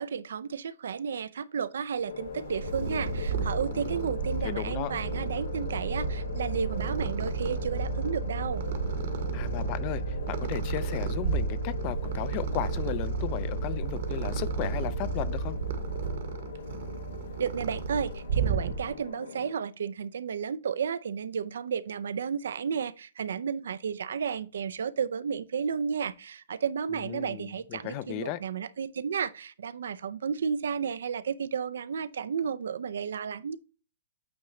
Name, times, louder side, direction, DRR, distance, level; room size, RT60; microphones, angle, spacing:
voice 1, 0.0-8.6 17.4-33.6, right 7 dB, 75° right, 0.4 m, -32 dB
sound 1, 2.0-19.5, left 6 dB, 90° left, 1.1 m, -41 dB
Purr, 2.2-19.1, right 4 dB, 55° right, 1.1 m, -32 dB
voice 2, 3.6-4.1 4.4-4.9 9.3-15.6 26.9-28.4, left 13 dB, 30° left, 0.4 m, -35 dB
8.7 x 3.7 x 3.1 m
hypercardioid pair, 165°, 0 cm